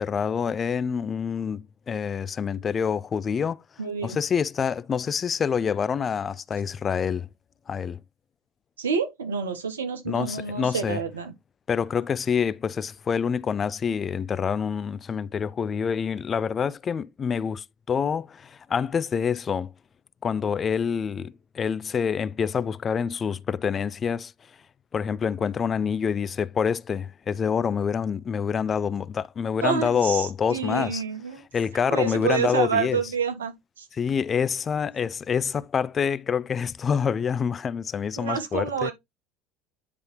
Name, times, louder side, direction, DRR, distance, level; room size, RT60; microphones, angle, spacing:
voice 1, 0.0-3.6 4.0-7.3 7.7-8.0 10.1-11.0 11.7-19.7 20.2-24.3 24.9-31.0 31.5-33.0 33.9-38.9, left 7 dB, 35° left, 0.4 m, -27 dB
voice 2, 3.8-4.2 8.8-11.3 29.6-31.4 31.9-33.8 38.2-38.9, right 6 dB, 85° right, 1.3 m, -28 dB
10.0 x 3.4 x 3.2 m
hypercardioid pair, 70°, 0 cm